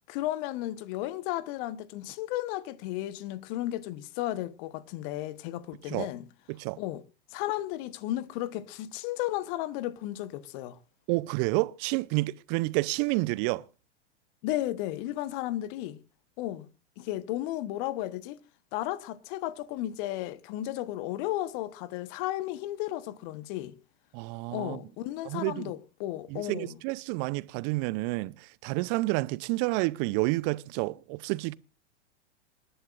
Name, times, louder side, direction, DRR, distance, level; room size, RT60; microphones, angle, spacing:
voice 1, 0.1-6.3 6.8-7.0 7.3-10.8 14.4-16.0 16.4-16.7 17.0-18.4 18.7-23.8 24.5-26.8, left 14 dB, 45° left, 1.2 m, -34 dB
voice 2, 11.1-13.6 24.1-24.8 25.2-25.7 26.3-28.3 28.6-31.5, right 22 dB, 40° right, 0.6 m, -29 dB
27.0 x 11.5 x 2.5 m
hypercardioid pair, 100°, 34 cm